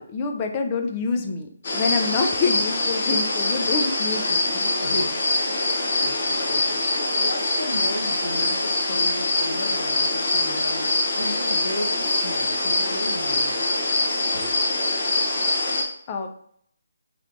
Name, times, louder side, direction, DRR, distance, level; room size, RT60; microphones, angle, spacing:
voice 1, 0.0-4.7 16.1-16.3, left 4 dB, 25° left, 4 dB, 0.5 m, -27 dB
sound 1, 1.6-15.8, left 2 dB, 50° left, 1.1 m, -24 dB
voice 2, 4.8-5.2 5.7-6.8 7.2-13.6 14.3-14.6, left 1 dB, 80° left, 2 dB, 1.1 m, -34 dB
3.3 x 3.1 x 3.9 m, 0.64 s
hypercardioid pair, 160°, 0 cm